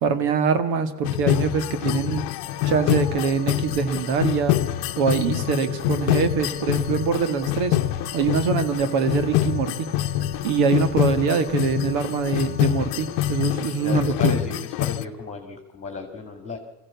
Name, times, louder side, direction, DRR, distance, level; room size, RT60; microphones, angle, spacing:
voice 1, 0.0-2.2 2.7-4.6 5.0-7.8 8.1-9.9 10.4-14.3, right 6 dB, 70° right, 10 dB, 1.9 m, -23 dB
sound 1, 1.0-15.0, left 14 dB, 75° left, 0.8 m, -25 dB
sound 2, 2.4-13.6, right 1 dB, 20° right, 4.2 m, -43 dB
voice 2, 13.8-16.6, left 4 dB, 15° left, 4 dB, 2.4 m, -34 dB
22.0 x 15.5 x 8.3 m, 1.0 s
cardioid pair, 125°, 40 cm